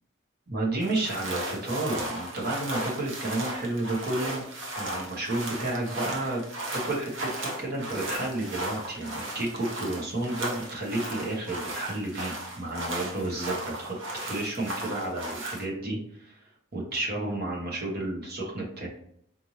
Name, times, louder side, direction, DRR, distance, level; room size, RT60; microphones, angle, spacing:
voice 1, 0.5-4.4 4.8-6.4 6.7-16.4 16.7-18.9, right 2 dB, 50° right, -3 dB, 1.2 m, -31 dB
sound 1, 0.8-15.7, right 1 dB, 65° right, 0.9 m, -36 dB
4.3 x 3.2 x 2.8 m, 0.70 s
head